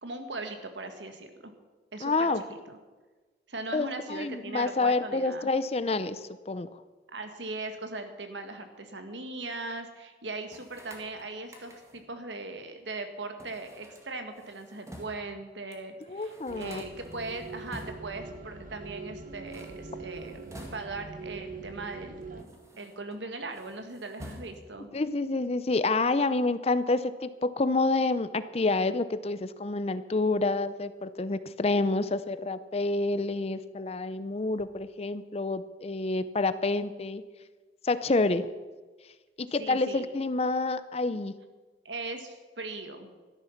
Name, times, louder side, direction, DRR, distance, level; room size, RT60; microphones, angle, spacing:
voice 1, 0.0-1.5 1.9-2.8 3.5-5.5 7.1-22.3 22.8-24.9 39.6-40.0 41.8-43.1, right 3 dB, 85° right, 7 dB, 1.7 m, -39 dB
voice 2, 2.0-2.4 3.7-6.7 16.1-16.8 24.9-37.2 37.8-38.5 39.4-41.3, left 3 dB, 35° left, 13 dB, 0.5 m, -28 dB
sound 1, 10.5-12.1 13.4-15.3 15.7-15.8 16.0-18.2 19.3-21.2 21.9-23.2 23.5-24.8, equal, 15° right, 1.8 m, -49 dB
sound 2, 16.5-22.4, right 3 dB, 50° right, 1.0 m, -43 dB
13.0 x 11.0 x 5.8 m, 1.3 s
head